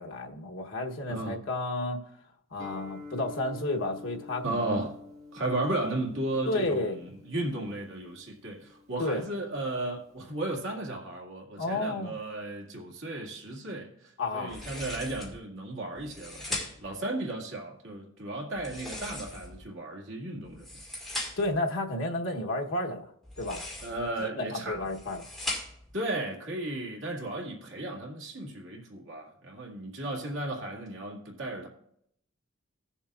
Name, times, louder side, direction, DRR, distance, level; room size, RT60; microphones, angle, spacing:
voice 1, 0.0-2.0 2.5-4.8 6.5-7.0 9.0-9.2 11.6-12.2 14.2-14.6 21.4-23.1 23.4-23.7 24.2-25.3, left 2 dB, 70° left, 0 dB, 1.1 m, -31 dB
voice 2, 1.0-1.4 4.4-5.0 5.3-20.7 23.8-24.8 25.9-31.7, right 2 dB, 70° right, -1 dB, 2.1 m, -35 dB
Guitar, 2.6-10.3, left 3 dB, 35° right, 1.6 m, -49 dB
sound 1, 14.5-15.4 16.0-17.0 18.5-19.6 20.4-21.6 23.2-24.1 24.7-25.9, left 1 dB, ahead, 2.2 m, -39 dB
17.5 x 7.1 x 2.4 m, 0.70 s
head